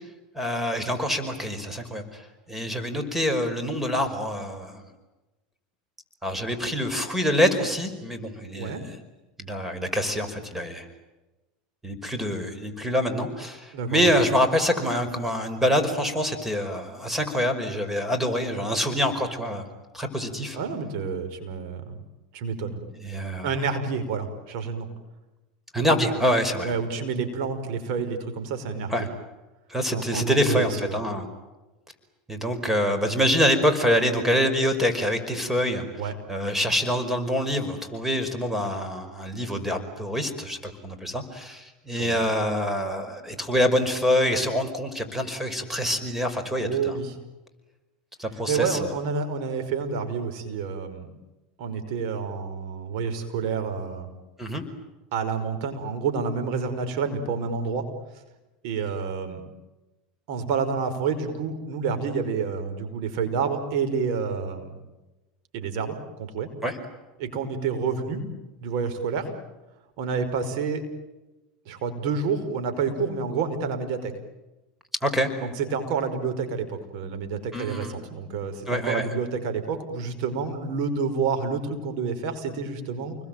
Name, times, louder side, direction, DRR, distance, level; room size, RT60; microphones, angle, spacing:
voice 1, 0.3-4.9 6.2-8.9 9.4-10.9 11.8-19.6 19.9-20.6 23.0-23.5 25.7-26.7 28.9-29.1 29.7-31.2 32.3-35.8 36.3-47.0 48.2-48.8 54.4-54.6 66.6-66.8 75.0-75.3 77.5-78.0 78.7-79.1, equal, 5° right, 8 dB, 5.3 m, -25 dB
voice 2, 13.7-14.1 20.5-22.0 22.3-22.8 23.4-24.9 26.6-29.1 29.9-31.0 36.0-36.1 41.9-42.2 46.6-47.2 48.5-51.1 51.6-54.1 55.1-57.9 58.6-59.4 60.3-64.8 65.5-66.5 67.2-68.2 68.6-69.3 70.0-70.8 71.7-74.1 75.4-83.2, right 5 dB, 65° right, 7 dB, 5.3 m, -29 dB
29.5 x 21.5 x 9.2 m, 1.1 s
hypercardioid pair, 105°, 4 cm